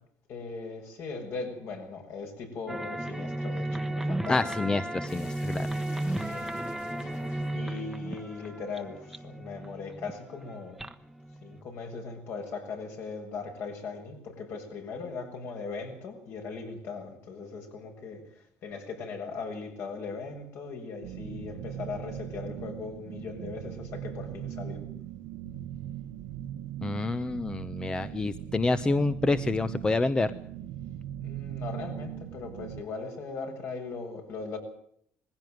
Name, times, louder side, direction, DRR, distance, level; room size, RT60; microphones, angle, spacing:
voice 1, 0.3-4.5 6.2-6.5 7.5-10.8 11.4-24.8 31.2-34.6, left 4 dB, 60° left, 4 dB, 7.2 m, -39 dB
sound 1, 2.7-11.6, right 1 dB, 5° right, 1.2 m, -34 dB
voice 2, 4.3-5.7 26.8-30.3, left 3 dB, 15° left, 13 dB, 0.8 m, -28 dB
sound 2, 5.1-9.8, left 5 dB, 85° left, 5.5 m, -53 dB
sound 3, 21.0-32.8, right 11 dB, 85° right, 1.2 m, -39 dB
20.5 x 16.0 x 9.3 m, 0.66 s
cardioid pair, 125°, 5 cm